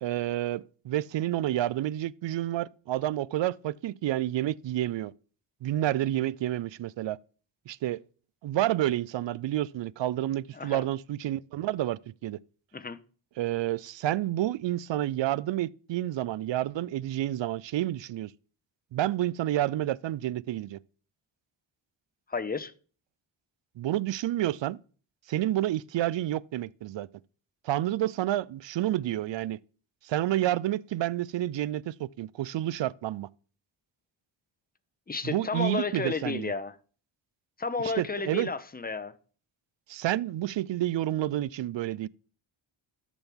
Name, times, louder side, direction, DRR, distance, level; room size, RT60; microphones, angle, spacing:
voice 1, 0.0-5.1 5.6-7.2 7.7-8.0 8.4-12.4 13.4-18.3 18.9-20.8 23.8-24.8 25.3-27.1 27.6-29.6 30.0-33.3 35.2-36.5 38.0-38.5 39.9-42.1, right 13 dB, 60° right, 0.5 m, -29 dB
voice 2, 10.5-10.8 12.7-13.0 22.3-22.7 35.1-36.8 37.6-39.1, left 4 dB, 20° left, 0.8 m, -32 dB
12.5 x 6.1 x 3.5 m
cardioid pair, 60°, 50 cm